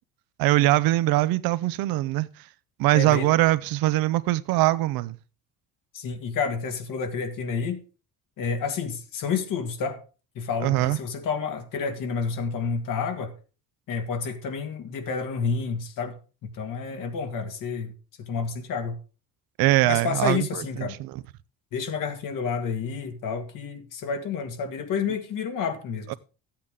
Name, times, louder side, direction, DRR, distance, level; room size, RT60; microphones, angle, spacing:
voice 1, 0.4-2.3 2.8-5.2 10.6-11.0 19.6-21.2 26.1-26.2, right 17 dB, 85° right, 0.7 m, -22 dB
voice 2, 2.9-3.3 5.9-7.8 8.4-10.0 10.4-13.3 13.9-16.1 16.5-17.9 18.2-19.0 19.8-21.0 21.7-26.1, left 5 dB, 65° left, 2.1 m, -29 dB
13.0 x 8.7 x 3.6 m
cardioid pair, 110°, 35 cm